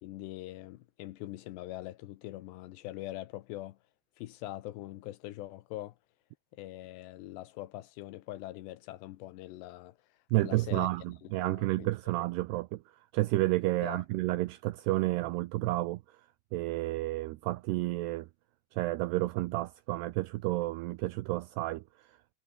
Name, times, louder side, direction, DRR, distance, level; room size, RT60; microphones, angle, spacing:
voice 1, 0.0-3.8 4.2-6.0 6.5-10.9 11.2-12.1 13.8-14.0, left 15 dB, 80° left, 2.8 m, -43 dB
voice 2, 10.3-12.8 13.1-16.0 16.5-18.3 18.7-22.1, right 19 dB, 85° right, 2.4 m, -31 dB
omnidirectional pair, 5.4 m